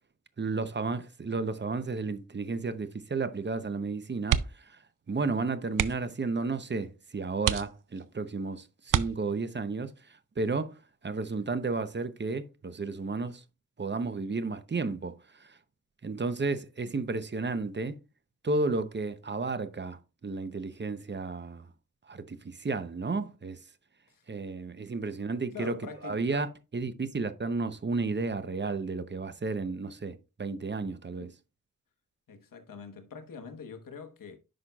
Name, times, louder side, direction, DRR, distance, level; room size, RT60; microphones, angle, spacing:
voice 1, 0.4-4.4 4.7-4.8 5.1-9.9 10.4-10.7 11.0-13.4 13.8-15.5 16.0-18.0 18.4-21.7 22.1-23.6 24.3-25.7 26.0-26.5 26.7-31.3, right 3 dB, 35° right, 0.7 m, -32 dB
sound 1, 4.2-4.8 5.1-5.2 5.7-6.2 6.8-6.9 7.4-8.2 8.9-9.6 11.2-11.5 11.9-12.0, right 10 dB, 75° right, 0.5 m, -30 dB
voice 2, 25.5-26.5 31.2-31.3 32.3-34.4, left 5 dB, 80° left, 1.2 m, -44 dB
10.0 x 5.7 x 2.3 m
wide cardioid pair, 85°, 33 cm